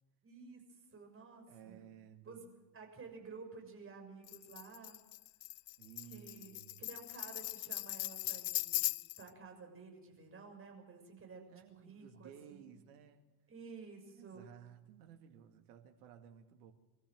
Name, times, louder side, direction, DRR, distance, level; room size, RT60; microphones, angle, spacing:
voice 1, 0.2-1.8 2.2-2.5 2.7-5.0 6.1-8.8 9.2-12.7 13.5-14.5, right 4 dB, 25° right, 3 dB, 6.7 m, -53 dB
voice 2, 1.5-2.4 5.8-6.8 11.5-13.3 14.1-16.7, right 9 dB, 65° right, 6 dB, 2.4 m, -56 dB
Tambourine, 4.3-9.3, left 19 dB, 65° left, 0.6 m, -39 dB
24.5 x 14.5 x 7.8 m, 1.1 s
figure-of-eight pair, 70°, 50 cm